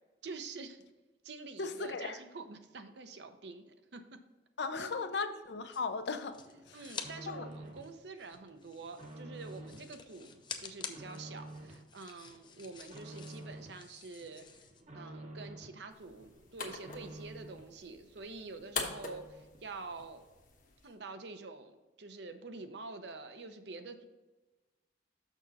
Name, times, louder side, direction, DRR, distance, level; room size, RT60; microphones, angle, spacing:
voice 1, 0.2-0.8 1.2-4.2 4.8-5.1 6.5-14.4 14.9-20.2 20.8-24.1, right 3 dB, 70° right, 8 dB, 0.7 m, -47 dB
voice 2, 1.6-2.2 4.6-6.4 6.7-6.8 7.3-7.5, left 4 dB, 70° left, 10 dB, 0.6 m, -36 dB
sound 1, 5.7-7.1 7.4-14.8, left 6 dB, 25° left, 0.5 m, -49 dB
sound 2, 6.3-8.0 8.3-9.9 10.3-11.9 12.2-13.8 14.2-15.8 16.2-17.7 18.2-18.3 18.5-18.6 18.8-19.7 20.0-20.1, right 1 dB, 40° right, 0.8 m, -50 dB
sound 3, 15.9-20.9, left 5 dB, 45° left, 1.0 m, -44 dB
6.4 x 6.3 x 4.1 m, 1.2 s
head